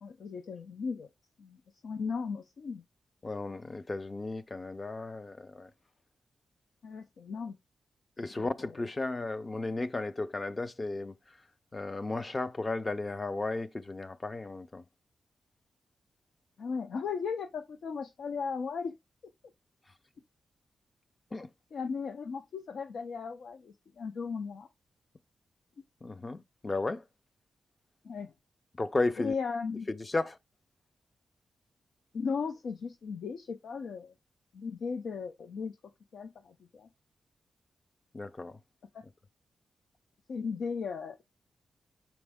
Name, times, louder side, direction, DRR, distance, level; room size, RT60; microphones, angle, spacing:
voice 1, 0.0-1.1 1.4-2.8 6.8-7.5 8.4-8.5 16.6-18.9 21.7-24.7 28.0-28.3 29.2-29.9 32.1-34.1 34.5-35.8 36.1-36.9 38.9-39.0 40.3-41.2, left 5 dB, 60° left, 0.6 m, -36 dB
voice 2, 3.2-5.7 8.2-11.1 11.7-14.8 21.3-21.5 26.0-27.0 28.8-29.3 29.9-30.4 38.1-38.6, left 2 dB, 20° left, 0.5 m, -34 dB
6.1 x 4.4 x 3.5 m
wide cardioid pair, 180°, 0 cm